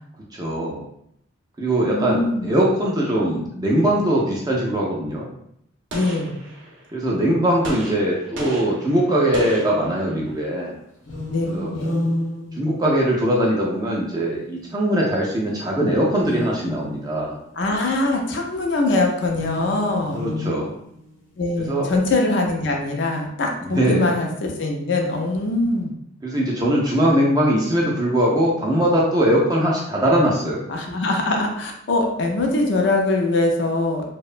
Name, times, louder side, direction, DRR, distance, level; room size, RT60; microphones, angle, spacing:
voice 1, 0.3-0.8 1.6-5.3 6.9-10.8 11.5-11.7 12.6-17.4 20.1-20.7 21.7-21.9 23.6-24.1 26.2-30.6, right 1 dB, 20° right, -3 dB, 0.3 m, -21 dB
voice 2, 1.9-2.6 5.9-6.4 11.3-11.5 11.7-12.0 17.6-20.2 21.4-25.9 30.7-34.1, left 2 dB, 65° left, 1 dB, 0.4 m, -22 dB
Gunshot gunfire, 5.9-7.0 7.6-10.4, right 1 dB, 70° right, 0.6 m, -35 dB
sound 1, 11.0-13.3 16.1-17.4 19.2-21.1, left 1 dB, 80° left, 0.9 m, -30 dB
2.8 x 2.1 x 2.4 m, 0.73 s
head